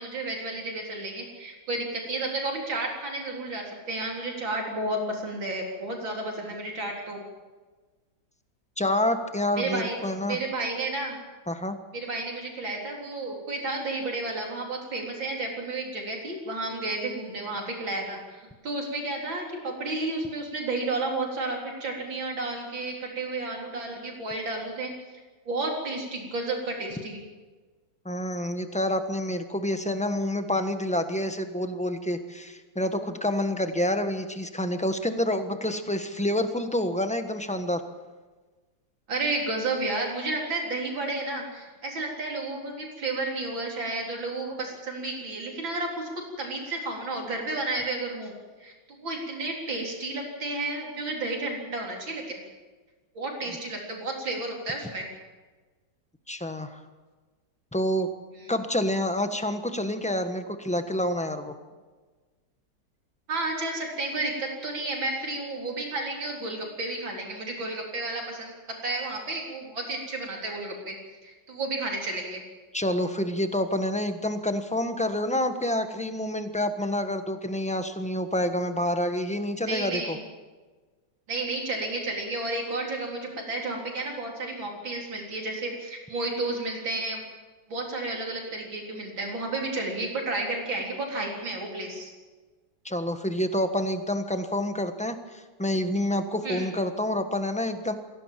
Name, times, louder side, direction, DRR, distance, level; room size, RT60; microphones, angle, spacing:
voice 1, 0.0-7.2 9.6-10.0 10.3-11.2 11.9-24.9 25.5-27.2 39.1-48.3 48.6-52.2 53.1-55.1 63.3-68.5 68.8-71.0 71.2-72.4 79.6-80.2 81.3-87.2 87.7-92.1 96.4-96.7, right 2 dB, 85° right, 0 dB, 4.7 m, -32 dB
voice 2, 8.8-10.4 11.5-11.8 28.0-37.8 53.4-53.6 56.3-56.8 57.7-58.1 58.5-61.5 72.7-80.2 92.8-97.9, left 1 dB, 5° left, 7 dB, 1.1 m, -28 dB
22.5 x 16.5 x 7.6 m, 1.3 s
omnidirectional pair, 2.1 m